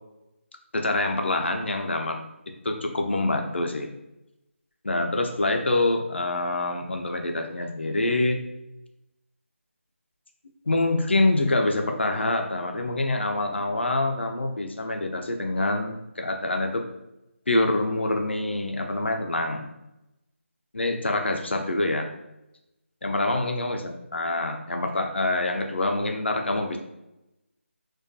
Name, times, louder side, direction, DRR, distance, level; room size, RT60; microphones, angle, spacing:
voice 1, 0.7-2.2 2.6-3.9 4.8-8.4 10.7-16.9 17.5-19.7 20.7-22.1 23.0-26.8, left 2 dB, 55° left, 4 dB, 0.3 m, -26 dB
2.5 x 2.2 x 2.3 m, 0.90 s
figure-of-eight pair, 180°, 7 cm